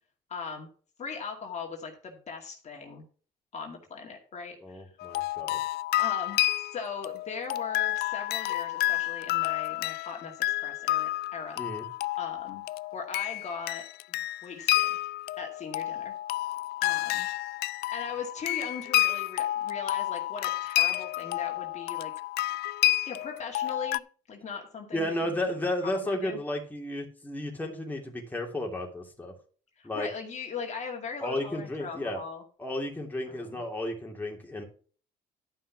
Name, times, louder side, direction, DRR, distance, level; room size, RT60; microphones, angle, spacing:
voice 1, 0.3-0.7 1.0-3.0 3.5-4.9 6.0-6.4 6.7-11.6 12.2-12.6 12.9-15.0 15.4-16.1 16.8-17.3 17.9-22.1 23.1-24.0 24.3-25.4 26.0-26.4 29.8-32.4 33.3-33.6, left 5 dB, 45° left, 2 dB, 2.3 m, -39 dB
voice 2, 4.6-5.6 11.6-11.9 24.9-29.3 29.8-30.1 31.2-32.2 32.6-34.6, left 1 dB, 10° left, 0 dB, 2.7 m, -33 dB
sound 1, 5.0-24.0, left 15 dB, 70° left, 0.4 m, -30 dB
11.5 x 5.7 x 5.9 m, 0.41 s
cardioid pair, 110°, 17 cm